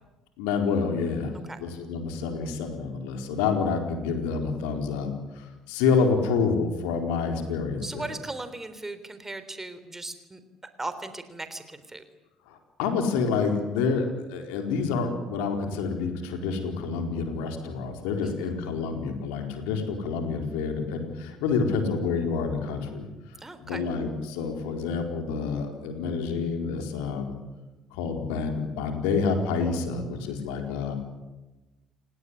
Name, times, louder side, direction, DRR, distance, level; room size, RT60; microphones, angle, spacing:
voice 1, 0.4-1.3 1.6-5.1 5.3-8.1 12.5-23.1 23.6-27.4 27.9-30.9, left 5 dB, 70° left, 5 dB, 4.4 m, -28 dB
voice 2, 7.8-10.4 10.8-12.0 18.2-18.3 23.4-23.8, right 2 dB, 15° right, 11 dB, 3.6 m, -37 dB
29.0 x 18.0 x 10.0 m, 1.1 s
hypercardioid pair, 55°, 2 cm